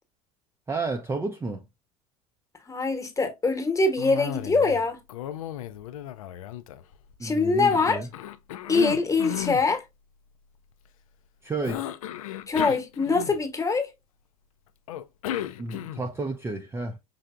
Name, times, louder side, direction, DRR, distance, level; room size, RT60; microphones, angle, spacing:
voice 1, 0.7-1.6 7.2-8.1 11.4-11.9 15.6-17.0, right 3 dB, 15° right, 0.5 m, -31 dB
voice 2, 2.7-5.0 7.2-8.0 8.7-9.8 12.5-13.9, left 3 dB, 15° left, 1.1 m, -23 dB
Cough, 4.0-4.8 5.1-7.2 7.7-9.7 11.6-13.6 14.9-16.2, left 12 dB, 65° left, 0.4 m, -34 dB
5.4 x 3.3 x 2.3 m
figure-of-eight pair, 70°, 19 cm